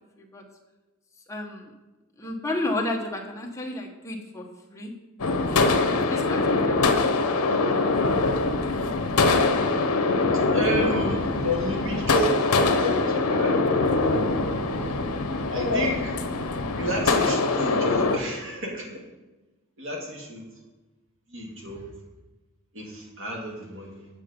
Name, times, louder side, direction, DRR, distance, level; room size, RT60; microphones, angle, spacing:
voice 1, 1.3-1.7 2.2-4.9 5.5-5.6 6.1-7.2 7.5-7.6, left 2 dB, 15° left, 0 dB, 1.0 m, -32 dB
sound 1, 5.2-18.2, left 3 dB, 80° left, 0.8 m, -23 dB
voice 2, 10.2-12.4 12.8-15.0 15.5-16.2 16.7-18.9 19.8-20.5 21.3-21.8 22.7-24.1, equal, 60° right, -1 dB, 2.1 m, -31 dB
8.4 x 6.8 x 5.2 m, 1.1 s
head